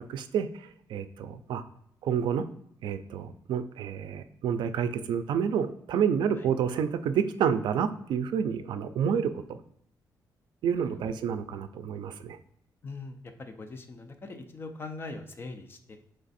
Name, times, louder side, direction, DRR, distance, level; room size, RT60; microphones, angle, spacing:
voice 1, 0.0-1.6 2.0-2.5 2.8-9.6 10.6-12.4, right 7 dB, 85° right, 11 dB, 0.4 m, -29 dB
voice 2, 12.8-16.0, left 3 dB, 30° left, 6 dB, 0.5 m, -41 dB
3.4 x 3.2 x 4.1 m, 0.73 s
wide cardioid pair, 165°, 8 cm